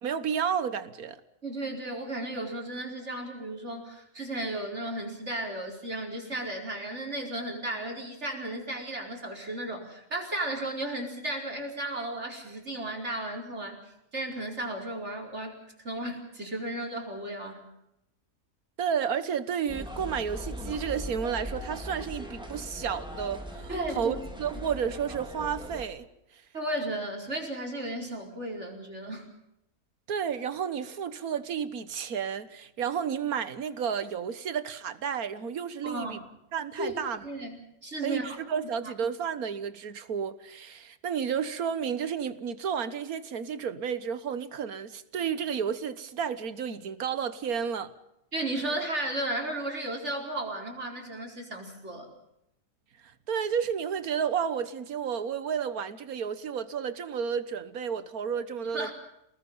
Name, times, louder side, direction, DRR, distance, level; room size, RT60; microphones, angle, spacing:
voice 1, 0.0-1.2 18.8-23.7 23.9-26.1 26.3-26.4 30.1-36.2 36.5-37.2 38.0-47.9 53.3-58.9, right 7 dB, 70° right, 1.7 m, -31 dB
voice 2, 1.4-13.8 14.1-17.6 23.7-24.2 26.5-29.3 35.8-36.3 36.8-38.4 38.8-38.9 48.3-52.1 58.6-58.9, right 1 dB, 45° right, 4.9 m, -34 dB
sound 1, 19.7-25.8, left 1 dB, 5° right, 2.6 m, -40 dB
Bowed string instrument, 20.1-26.1, left 3 dB, 20° left, 4.8 m, -52 dB
30.0 x 19.5 x 5.6 m
omnidirectional pair, 1.6 m